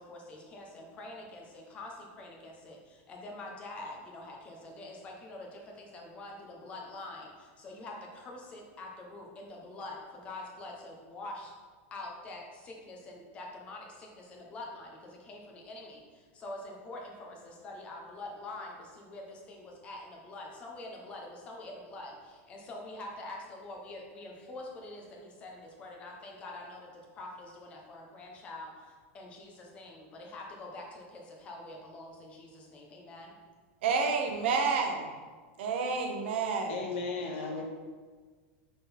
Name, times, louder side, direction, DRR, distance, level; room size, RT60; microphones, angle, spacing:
voice 1, 0.0-11.5 11.9-33.4, left 2 dB, 20° left, 0 dB, 0.8 m, -45 dB
voice 2, 33.8-35.1 35.6-36.8, right 5 dB, 60° right, 3 dB, 0.9 m, -29 dB
voice 3, 36.7-37.6, left 4 dB, 75° left, 1 dB, 1.2 m, -35 dB
6.0 x 3.9 x 4.2 m, 1.5 s
supercardioid pair, 180°, 7 cm